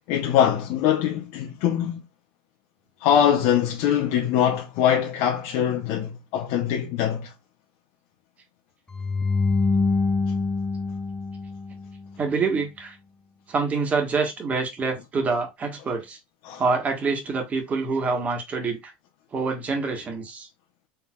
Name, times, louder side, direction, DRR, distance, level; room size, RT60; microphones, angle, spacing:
voice 1, 0.1-2.0 3.0-7.3 16.4-16.6, left 9 dB, 60° left, 0.7 m, -22 dB
sound 1, 8.9-12.1, left 4 dB, 10° left, 0.4 m, -25 dB
voice 2, 12.2-13.0 13.5-16.2 16.6-18.9 19.3-20.5, right 4 dB, 25° right, 1.4 m, -26 dB
4.4 x 3.6 x 2.3 m
supercardioid pair, 115°, 5 cm